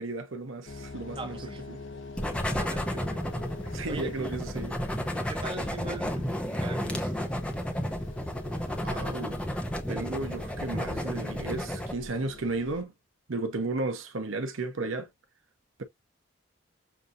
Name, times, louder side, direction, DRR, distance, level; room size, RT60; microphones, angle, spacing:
voice 1, 0.0-1.4 1.7-1.8 3.7-4.7 8.8-9.4 9.9-12.9 13.3-15.1, right 3 dB, 75° right, 0.8 m, -34 dB
sound 1, 0.6-12.8, left 3 dB, 65° left, 0.9 m, -45 dB
voice 2, 1.2-1.7 2.5-3.2 3.9-4.3 5.3-7.2, right 3 dB, 25° right, 1.2 m, -41 dB
sound 2, 2.2-11.9, equal, 5° left, 0.7 m, -32 dB
6.9 x 2.7 x 2.5 m
head